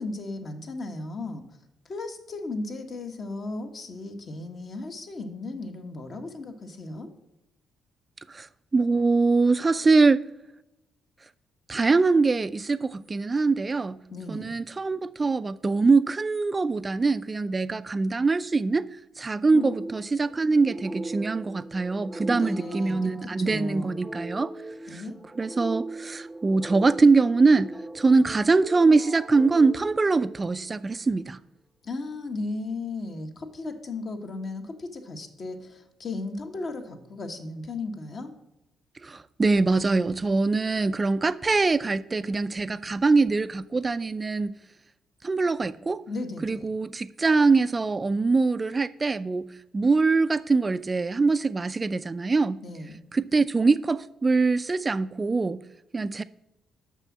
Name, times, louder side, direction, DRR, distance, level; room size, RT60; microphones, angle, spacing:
voice 1, 0.0-1.4 1.8-7.1 14.1-14.6 19.5-19.8 22.3-23.1 23.4-24.0 24.9-25.1 31.8-38.3 46.1-46.7 52.6-53.0, left 3 dB, 50° left, 1.4 m, -35 dB
voice 2, 8.7-10.2 11.7-14.0 14.3-18.9 19.2-24.5 24.9-25.0 25.4-31.4 39.0-44.5 45.2-46.0 46.4-49.5 49.7-52.6 53.1-55.6 55.9-56.2, right 3 dB, 25° right, 0.3 m, -23 dB
sound 1, 19.5-30.8, right 2 dB, ahead, 0.7 m, -39 dB
6.6 x 6.1 x 7.3 m
cardioid pair, 90°, 0 cm